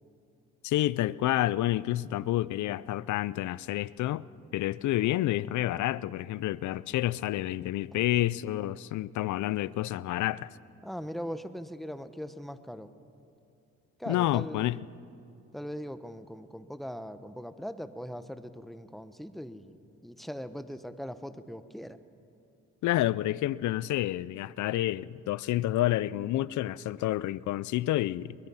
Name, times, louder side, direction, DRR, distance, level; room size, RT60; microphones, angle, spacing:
voice 1, 0.6-4.3 4.5-10.5 14.1-14.8 22.8-28.4, left 15 dB, 75° left, 0.5 m, -29 dB
voice 2, 10.8-12.9 14.0-14.9 15.5-22.0, equal, ahead, 0.9 m, -40 dB
23.0 x 20.5 x 5.6 m
cardioid pair, 90°, 30 cm